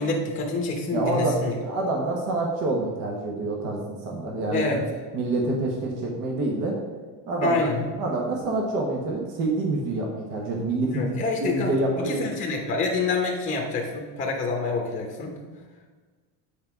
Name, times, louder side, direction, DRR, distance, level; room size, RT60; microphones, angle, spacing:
voice 1, 0.0-1.5 4.5-4.8 7.4-7.9 10.9-15.3, left 3 dB, 20° left, 0 dB, 0.9 m, -27 dB
voice 2, 0.9-4.8 5.1-6.8 7.3-7.6 8.0-11.1 11.4-12.3, right 2 dB, 50° right, -1 dB, 1.3 m, -27 dB
8.4 x 4.0 x 5.9 m, 1.4 s
cardioid pair, 170°, 40 cm